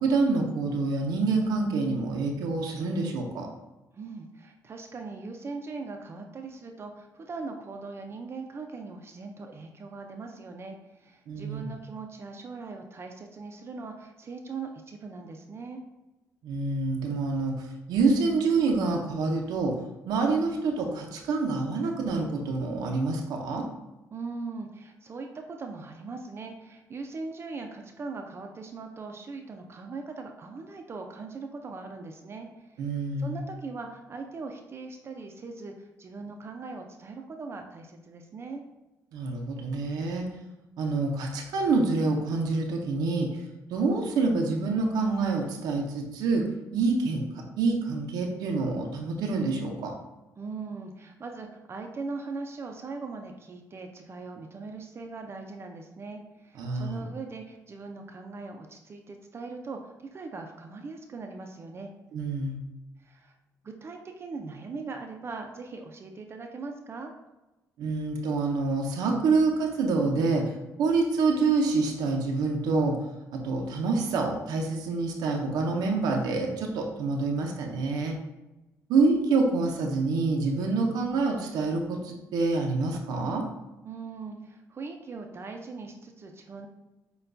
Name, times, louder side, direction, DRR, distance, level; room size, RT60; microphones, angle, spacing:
voice 1, 0.0-3.5 11.3-11.7 16.4-19.7 20.1-23.6 32.8-33.4 39.1-40.3 40.8-43.4 43.7-46.4 46.7-47.2 47.6-49.9 56.6-57.1 62.1-62.6 67.8-70.5 70.8-73.0 73.3-78.1 78.9-83.4, right 3 dB, 85° right, 1 dB, 0.6 m, -27 dB
voice 2, 3.9-15.8 24.1-32.8 33.2-38.6 50.4-61.9 63.0-63.3 63.6-67.1 83.8-86.7, right 4 dB, 40° right, 4 dB, 0.5 m, -40 dB
6.6 x 2.3 x 2.6 m, 1.0 s
cardioid pair, 85°, 7 cm